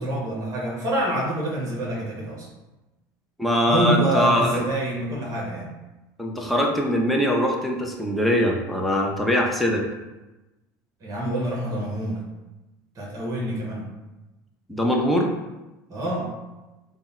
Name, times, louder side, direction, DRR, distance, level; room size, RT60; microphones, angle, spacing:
voice 1, 0.0-2.5 3.7-5.7 11.0-12.2 13.0-13.9 15.9-16.3, right 1 dB, 35° right, -2 dB, 1.1 m, -26 dB
voice 2, 3.4-4.7 6.2-9.9 14.7-15.3, equal, ahead, -1 dB, 0.7 m, -22 dB
3.5 x 2.1 x 4.2 m, 1.1 s
hypercardioid pair, 75°, 11 cm